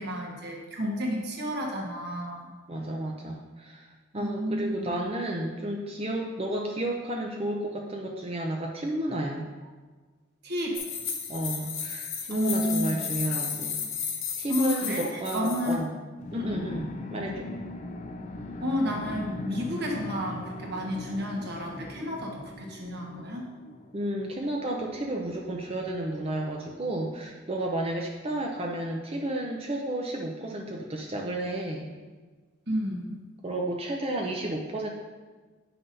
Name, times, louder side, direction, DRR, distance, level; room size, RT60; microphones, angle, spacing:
voice 1, 0.0-2.5 4.2-5.0 10.4-10.8 12.3-13.1 14.5-15.8 16.3-16.7 18.6-23.5 32.7-33.2, equal, 55° right, -1 dB, 1.2 m, -31 dB
voice 2, 2.7-9.5 11.3-13.8 14.4-16.0 16.3-17.5 23.9-31.9 33.4-34.9, right 1 dB, 30° right, 0 dB, 0.5 m, -32 dB
sound 1, 10.7-15.8, left 7 dB, 80° left, 0.9 m, -33 dB
sound 2, 16.2-24.3, left 2 dB, 35° left, 0.4 m, -39 dB
9.2 x 5.8 x 2.6 m, 1.4 s
head